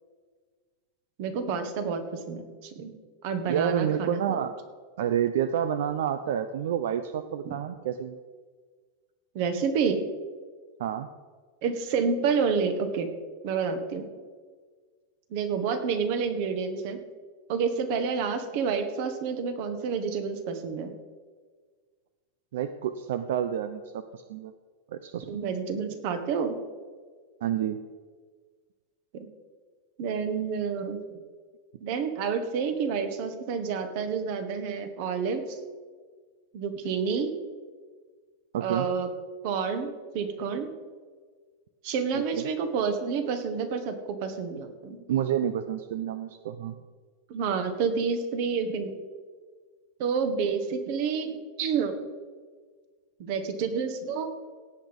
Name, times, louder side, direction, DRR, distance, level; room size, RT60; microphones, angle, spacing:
voice 1, 1.2-2.0 2.3-2.9 3.2-4.5 7.4-7.5 9.3-10.0 11.6-13.1 13.4-14.1 15.3-17.0 17.5-20.9 25.3-26.6 29.1-29.3 30.0-31.2 31.8-35.6 36.5-37.3 38.6-39.1 39.4-40.7 41.8-43.9 44.2-45.0 47.3-48.9 50.0-51.3 51.6-52.0 53.2-54.3, right 5 dB, 40° right, 9 dB, 1.5 m, -29 dB
voice 2, 3.5-4.5 5.0-8.2 10.8-11.1 22.5-24.5 24.9-25.3 27.4-27.8 38.5-38.9 42.1-42.4 45.1-46.7, right 9 dB, 65° right, 10 dB, 0.7 m, -29 dB
17.0 x 8.3 x 5.3 m, 1.5 s
supercardioid pair, 175°, 0 cm